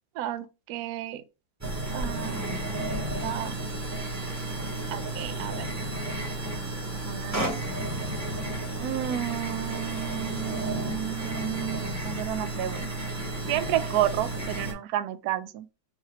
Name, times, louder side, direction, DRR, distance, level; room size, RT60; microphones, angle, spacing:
voice 1, 0.2-1.2 1.9-2.5 3.2-3.6 4.9-5.7 6.9-7.4 8.8-12.9 13.5-15.7, right 12 dB, 80° right, 0.8 m, -31 dB
sound 1, 1.6-14.7, right 2 dB, 10° right, 0.8 m, -32 dB
4.8 x 2.9 x 3.1 m
omnidirectional pair, 2.1 m